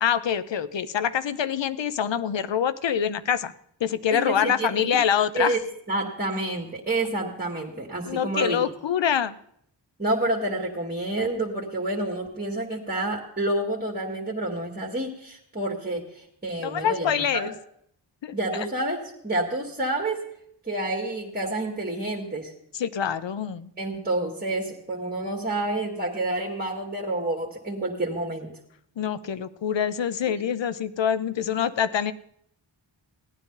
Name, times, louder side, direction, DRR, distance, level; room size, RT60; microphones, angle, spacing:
voice 1, 0.0-3.5 3.8-5.6 8.1-9.4 16.6-17.5 18.2-18.7 22.7-23.7 29.0-32.1, left 8 dB, 70° left, 15 dB, 0.7 m, -25 dB
voice 2, 4.1-5.0 5.3-5.6 5.9-8.6 10.0-17.5 18.3-20.2 20.7-22.5 23.8-28.5 30.3-30.4, right 2 dB, 20° right, -2 dB, 1.8 m, -29 dB
16.5 x 9.8 x 3.9 m, 0.71 s
cardioid pair, 45°, 45 cm